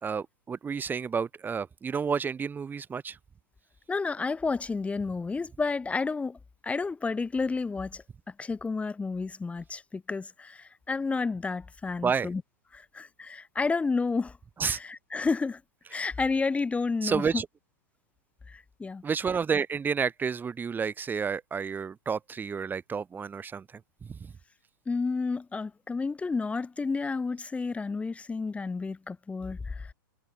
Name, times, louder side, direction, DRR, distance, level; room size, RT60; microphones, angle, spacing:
voice 1, 0.0-3.2 12.0-12.3 14.6-14.8 17.0-17.5 19.0-23.6 24.1-24.3, right 6 dB, 15° right, 5.9 m, -30 dB
voice 2, 3.9-6.4 6.6-8.0 8.4-12.4 12.7-14.4 14.7-15.6 15.9-17.4 18.5-19.0 24.9-29.9, left 4 dB, 10° left, 6.2 m, -31 dB
hypercardioid pair, 110°, 11 cm